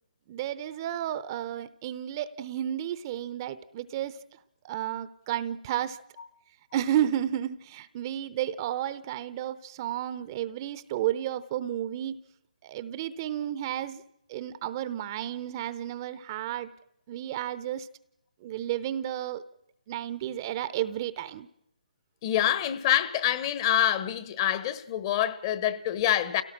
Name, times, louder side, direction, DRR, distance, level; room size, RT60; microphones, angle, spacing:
voice 1, 0.3-4.2 4.6-6.0 6.7-12.1 12.6-14.0 14.3-16.7 17.1-17.9 18.4-19.4 19.9-21.5, right 11 dB, 30° right, 0.7 m, -32 dB
voice 2, 22.2-26.4, left 11 dB, 30° left, 1.1 m, -26 dB
28.5 x 17.5 x 6.0 m
figure-of-eight pair, 150°, 4 cm